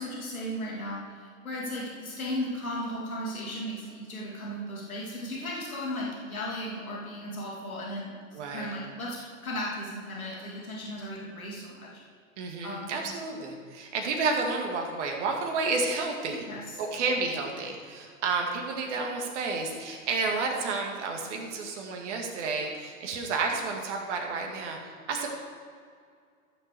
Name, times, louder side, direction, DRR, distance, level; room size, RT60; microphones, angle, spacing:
voice 1, 0.0-8.1 8.5-12.0 12.6-12.9 16.5-16.8, equal, 90° left, -5 dB, 2.9 m, -36 dB
voice 2, 8.3-8.7 12.4-16.5 16.8-24.8 25.1-25.3, right 4 dB, 60° right, 1 dB, 2.2 m, -31 dB
14.0 x 6.9 x 4.8 m, 2.2 s
hypercardioid pair, 110°, 41 cm